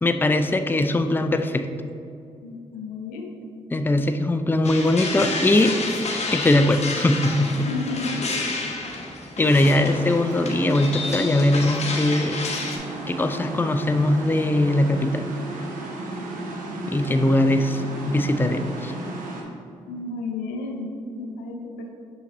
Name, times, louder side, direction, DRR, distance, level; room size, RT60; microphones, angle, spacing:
voice 1, 0.0-1.7 3.7-5.8 6.3-7.7 9.4-12.4 13.1-15.2 16.9-18.9, left 1 dB, 15° left, 8 dB, 0.4 m, -21 dB
voice 2, 2.4-3.3 7.6-8.2 19.9-21.9, left 3 dB, 85° left, 3 dB, 0.6 m, -32 dB
sound 1, 4.6-12.8, left 3 dB, 50° left, 1.1 m, -30 dB
sound 2, 9.5-19.4, right 2 dB, 75° right, 1.0 m, -34 dB
6.5 x 5.5 x 3.0 m, 2.5 s
hypercardioid pair, 45°, 14 cm